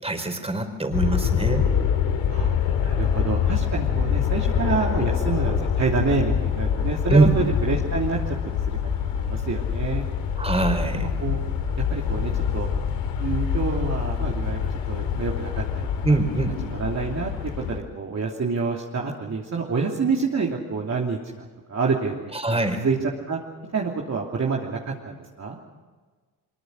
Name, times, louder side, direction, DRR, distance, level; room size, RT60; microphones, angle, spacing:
voice 1, 0.0-1.7 7.1-7.3 10.4-11.1 16.0-16.6 22.3-22.8, right 2 dB, 15° right, 5 dB, 4.7 m, -22 dB
sound 1, 0.9-17.8, left 8 dB, 65° left, 3.0 m, -25 dB
voice 2, 2.3-8.2 8.4-10.0 10.9-11.4 11.9-12.7 13.2-15.9 16.4-23.0 23.3-23.4 23.7-25.6, right 4 dB, 35° right, -2 dB, 3.0 m, -28 dB
24.0 x 22.5 x 6.5 m, 1.4 s
hypercardioid pair, 55°, 46 cm